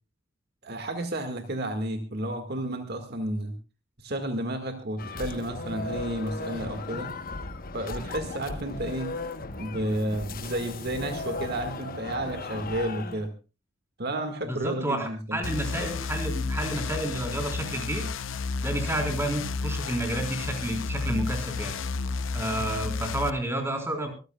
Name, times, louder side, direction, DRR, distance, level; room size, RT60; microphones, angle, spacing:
voice 1, 0.6-3.5 4.0-7.1 7.7-9.1 9.6-13.3 14.0-15.4, right 1 dB, 55° right, 7 dB, 1.8 m, -31 dB
sound 1, 5.0-13.3, left 3 dB, 50° left, 1.1 m, -36 dB
voice 2, 14.4-18.0 18.6-21.7 22.3-24.1, right 1 dB, 15° right, 3 dB, 4.0 m, -30 dB
sound 2, 15.4-23.3, left 4 dB, 80° left, 0.7 m, -32 dB
25.0 x 14.5 x 2.3 m, 0.31 s
head